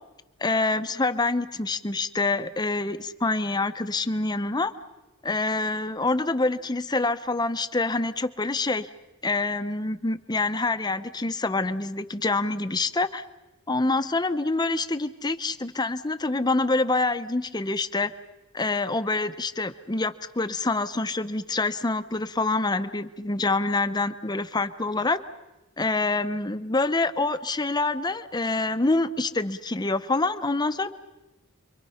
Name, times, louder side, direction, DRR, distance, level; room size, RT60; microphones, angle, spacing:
voice 1, 0.4-4.7 5.2-8.9 9.2-13.2 13.7-18.1 18.5-25.2 25.8-30.9, left 3 dB, 20° left, 10 dB, 0.7 m, -26 dB
30.0 x 23.5 x 5.7 m, 1.0 s
head